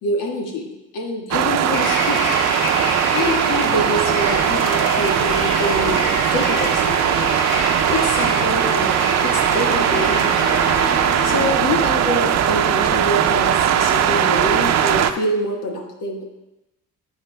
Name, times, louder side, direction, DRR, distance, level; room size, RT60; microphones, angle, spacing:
voice 1, 0.0-2.2 3.1-7.3 7.9-9.0 9.2-10.4 11.2-16.2, left 1 dB, 90° left, 1 dB, 1.5 m, -26 dB
sound 1, 1.3-15.1, right 9 dB, 60° right, 0.5 m, -19 dB
sound 2, 1.7-11.5, left 2 dB, 70° left, 1.8 m, -28 dB
9.6 x 7.9 x 2.2 m, 0.95 s
cardioid pair, 90°, 30 cm